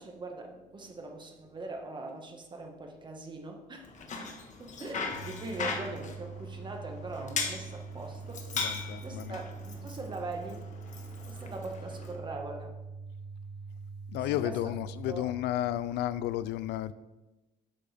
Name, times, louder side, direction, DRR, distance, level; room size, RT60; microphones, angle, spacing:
voice 1, 0.0-8.5 9.0-10.7 11.3-12.8 14.2-14.6 15.1-15.3, right 2 dB, 25° right, 3 dB, 1.6 m, -41 dB
Bicycle, 3.8-12.2, left 5 dB, 45° left, 1.4 m, -39 dB
sound 1, 5.1-15.1, right 5 dB, 25° left, 1.8 m, -44 dB
voice 2, 8.5-9.4 14.1-16.9, left 13 dB, 80° left, 16 dB, 0.4 m, -32 dB
10.0 x 7.6 x 3.5 m, 1.0 s
cardioid pair, 110°, 17 cm